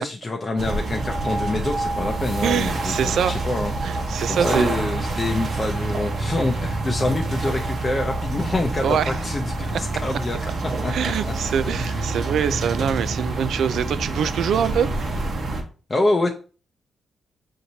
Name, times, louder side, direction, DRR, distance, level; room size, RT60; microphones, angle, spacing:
voice 1, 0.0-3.7 4.3-10.4 10.6-11.3 11.6-12.0 15.9-16.3, left 2 dB, 25° left, 1 dB, 0.6 m, -26 dB
sound 1, 0.6-15.6, right 2 dB, 55° right, 1.0 m, -27 dB
voice 2, 2.4-3.3 3.8-4.7 8.8-9.1 10.9-14.9, right 8 dB, 75° right, 14 dB, 0.3 m, -24 dB
6.4 x 2.9 x 2.8 m, 0.37 s
cardioid pair, 105°, 0 cm